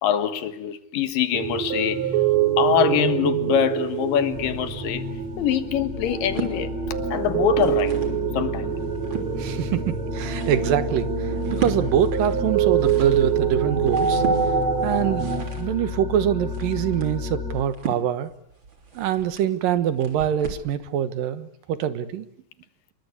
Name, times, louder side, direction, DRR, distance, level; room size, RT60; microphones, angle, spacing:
voice 1, 0.0-2.0 2.6-5.0 5.4-6.7 7.1-7.9 8.3-8.8, left 10 dB, 80° left, 3.2 m, -24 dB
sound 1, 1.3-15.4, right 8 dB, 55° right, 4.0 m, -25 dB
sound 2, 4.3-17.6, left 5 dB, 25° left, 3.1 m, -33 dB
sound 3, 6.1-6.6 7.3-8.2 8.7-9.3 9.9-20.7, right 6 dB, 35° right, 3.9 m, -37 dB
voice 2, 9.4-14.2 14.8-18.3 18.9-22.3, right 10 dB, 80° right, 3.1 m, -24 dB
26.5 x 23.0 x 8.3 m
omnidirectional pair, 3.9 m